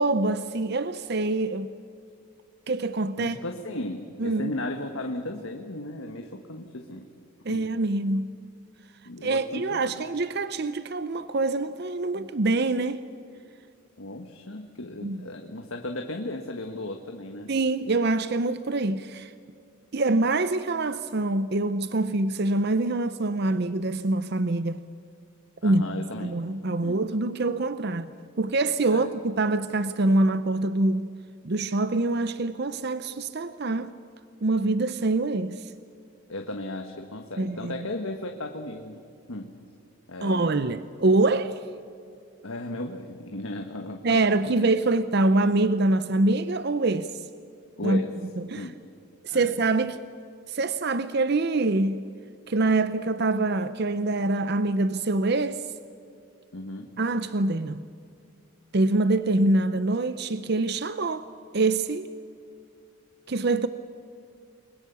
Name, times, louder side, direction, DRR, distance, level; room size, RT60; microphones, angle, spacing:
voice 1, 0.0-1.7 2.7-3.4 4.2-4.5 7.5-8.3 9.2-13.0 15.0-15.3 17.5-19.3 19.9-24.8 25.6-28.1 28.4-31.1 31.4-33.9 34.4-35.7 37.4-37.9 40.2-41.6 44.0-47.3 47.8-48.0 48.4-48.7 49.2-50.0 50.5-52.0 52.5-55.7 57.0-57.8 58.7-61.3 61.5-62.1 63.3-63.7, right 2 dB, 50° right, 0.6 m, -25 dB
voice 2, 3.2-7.1 7.5-7.7 9.0-10.0 14.0-17.5 25.6-26.4 26.8-27.0 28.9-29.1 36.3-39.0 39.3-39.5 40.1-40.6 42.4-44.2 47.8-48.1 48.5-48.7 49.3-49.5 56.5-56.9, left 2 dB, 70° left, 1.5 m, -35 dB
29.0 x 22.0 x 7.0 m
head